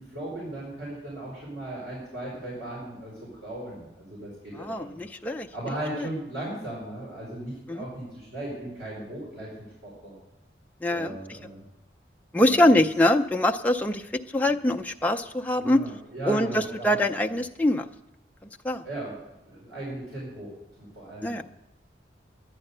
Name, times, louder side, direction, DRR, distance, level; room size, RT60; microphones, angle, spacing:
voice 1, 0.0-5.0 5.5-10.1 10.9-11.6 12.4-12.6 15.6-17.0 17.2-17.4 18.8-21.4, right 1 dB, 80° right, -5 dB, 4.8 m, -37 dB
voice 2, 4.5-5.5 6.0-6.1 7.7-7.8 10.8-11.2 12.3-14.0 14.3-15.8 16.3-17.9 18.6-18.8 21.2-21.4, left 1 dB, 10° left, 3 dB, 0.5 m, -23 dB
11.0 x 9.9 x 6.7 m, 0.93 s
head